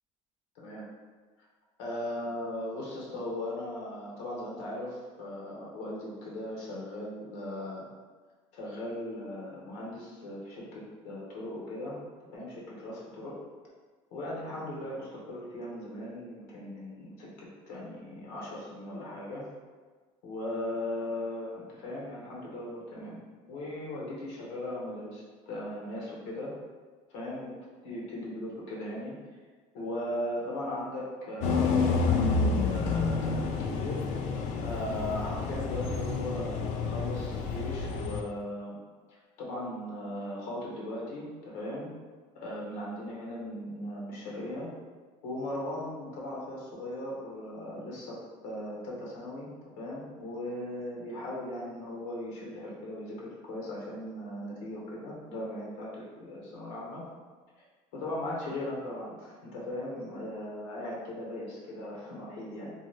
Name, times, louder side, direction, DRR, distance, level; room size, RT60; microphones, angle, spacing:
voice 1, 0.5-0.9 1.8-7.9 8.5-12.0 12.3-13.3 14.1-19.5 20.2-26.5 27.1-27.5 27.8-29.2 29.7-34.0 34.6-38.8 39.1-41.9 42.3-44.7 45.2-48.2 48.4-49.5 49.8-57.0 57.9-62.7, left 1 dB, 90° left, -4 dB, 0.8 m, -38 dB
sound 1, 31.4-38.2, left 4 dB, 60° left, 0.4 m, -29 dB
2.7 x 2.3 x 3.1 m, 1.4 s
cardioid pair, 115°, 14 cm